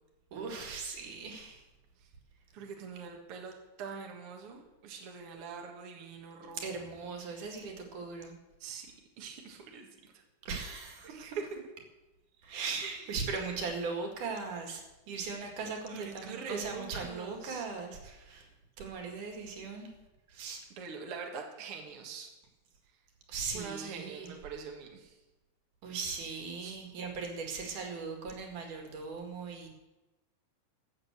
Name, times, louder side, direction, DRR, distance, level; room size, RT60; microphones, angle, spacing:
voice 1, 0.3-1.6 6.4-8.3 10.4-11.4 12.4-18.4 18.8-19.9 20.3-20.6 23.3-24.3 25.8-29.7, right 4 dB, 70° right, 2 dB, 3.5 m, -39 dB
voice 2, 2.5-7.1 8.6-8.9 9.2-9.9 11.1-11.3 12.8-13.2 15.9-17.7 20.8-22.3 23.5-25.1 26.6-26.8, right 5 dB, 50° right, 1 dB, 2.2 m, -44 dB
13.5 x 8.0 x 8.2 m, 1.0 s
omnidirectional pair, 3.8 m